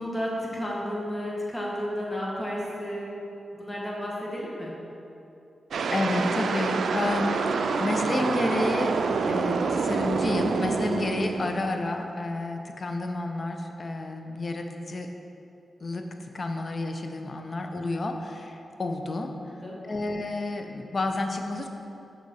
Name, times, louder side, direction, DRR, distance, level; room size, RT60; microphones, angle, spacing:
voice 1, 0.0-3.2 3.5-4.7 17.2-17.3 19.2-19.8, equal, 20° left, -4 dB, 1.8 m, -32 dB
sound 1, 5.7-12.0, right 4 dB, 80° right, 0.4 m, -27 dB
voice 2, 5.9-8.9 9.3-15.1 15.8-19.3 19.8-21.7, left 2 dB, 45° left, 5 dB, 0.7 m, -30 dB
6.9 x 6.0 x 4.7 m, 2.8 s
cardioid pair, 70°, 0 cm